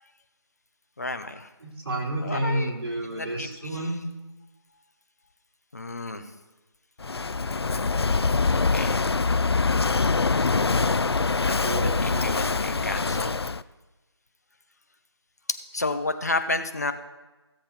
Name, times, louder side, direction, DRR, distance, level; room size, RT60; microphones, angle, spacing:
voice 1, 1.0-1.5 2.2-2.7 3.0-3.9 5.7-6.3 7.6-7.8 8.4-9.0 11.3-11.5 11.8-13.4 15.7-16.9, left 2 dB, 35° left, 8 dB, 0.8 m, -31 dB
voice 2, 1.6-4.0 11.6-12.4, right 1 dB, 55° right, -4 dB, 4.3 m, -31 dB
Walk footsteps / Wind / Waves surf, 7.0-13.6, left 4 dB, 65° left, 0.5 m, -24 dB
15.5 x 7.7 x 4.4 m, 1.1 s
figure-of-eight pair, 175°, 15 cm